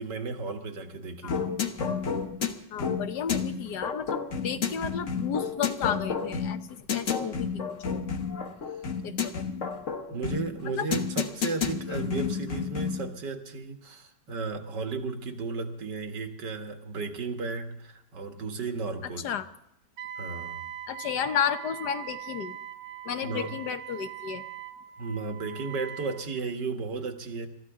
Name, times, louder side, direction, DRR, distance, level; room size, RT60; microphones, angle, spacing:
voice 1, 0.0-1.6 10.1-19.3 20.2-20.7 23.2-23.5 25.0-27.5, right 4 dB, 85° right, 5 dB, 2.3 m, -34 dB
sound 1, 1.3-13.1, left 6 dB, 50° left, 1.5 m, -31 dB
voice 2, 2.7-8.0 9.0-9.4 10.7-10.9 11.9-12.0 19.2-19.5 20.9-22.6 23.0-24.4, left 8 dB, 75° left, 9 dB, 1.5 m, -32 dB
Wind instrument woodwind instrument, 20.0-26.2, right 11 dB, 65° right, 1.4 m, -41 dB
23.0 x 13.5 x 3.7 m, 0.80 s
omnidirectional pair, 1.8 m